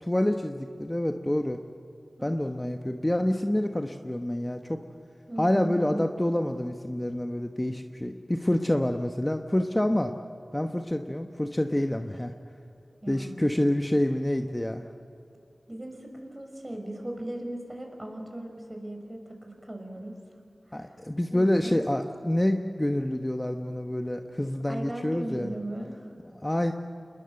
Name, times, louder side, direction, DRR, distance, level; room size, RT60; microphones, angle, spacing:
voice 1, 0.0-1.6 2.2-4.8 5.4-10.1 10.5-12.3 13.1-14.8 20.7-25.5 26.4-26.7, left 1 dB, 20° left, 5 dB, 1.2 m, -27 dB
voice 2, 2.2-2.7 5.3-6.1 13.0-13.4 15.7-20.2 20.7-20.9 21.3-21.8 24.7-26.1, right 1 dB, 25° right, 3 dB, 5.7 m, -38 dB
27.5 x 21.0 x 7.8 m, 2.5 s
wide cardioid pair, 45°, 0 cm